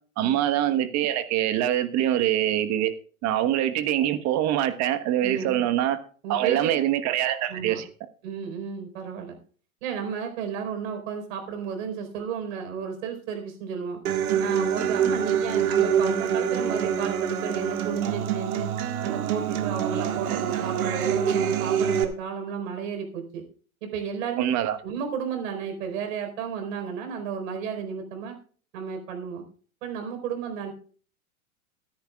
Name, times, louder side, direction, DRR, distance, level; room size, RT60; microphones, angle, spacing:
voice 1, 0.2-2.9 3.2-6.0 6.3-7.9 24.4-24.8, right 12 dB, 40° right, 10 dB, 1.3 m, -24 dB
voice 2, 5.2-5.6 6.2-6.7 7.5-7.8 8.2-9.4 9.8-14.0 14.4-18.7 19.0-23.4 23.8-24.5 24.8-28.4 28.7-29.4 29.8-30.7, right 7 dB, 65° right, 5 dB, 4.5 m, -32 dB
Human voice / Acoustic guitar, 14.0-22.0, right 8 dB, 80° right, 2.0 m, -25 dB
22.5 x 10.5 x 2.4 m, 0.43 s
hypercardioid pair, 115°, 43 cm